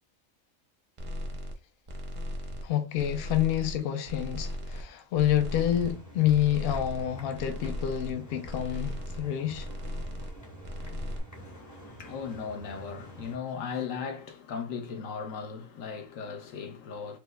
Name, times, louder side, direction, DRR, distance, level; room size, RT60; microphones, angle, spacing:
sound 1, 1.0-1.6 1.9-2.7 3.0-3.8 4.1-4.9 5.1-5.9 6.2-7.1 7.3-8.1 8.4-9.3 9.5-10.4 10.6-11.2, left 1 dB, 50° right, 0.4 m, -37 dB
voice 1, 2.6-9.7, left 11 dB, 60° left, 0.7 m, -28 dB
sound 2, 5.3-13.4, equal, 15° left, 0.6 m, -47 dB
voice 2, 11.3-17.2, left 6 dB, 75° left, 1.0 m, -37 dB
4.5 x 2.2 x 2.2 m
omnidirectional pair, 1.4 m